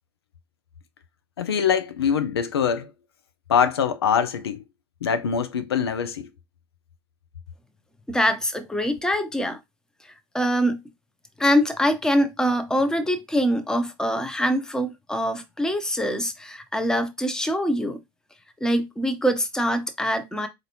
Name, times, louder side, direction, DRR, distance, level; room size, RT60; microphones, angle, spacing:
voice 1, 1.4-2.9 3.5-4.6 5.0-6.3, left 7 dB, 80° left, 0.5 m, -23 dB
voice 2, 8.1-9.6 10.3-10.8 11.4-18.0 18.6-20.5, equal, 5° left, 0.7 m, -24 dB
4.1 x 2.6 x 2.9 m
figure-of-eight pair, 75°, 13 cm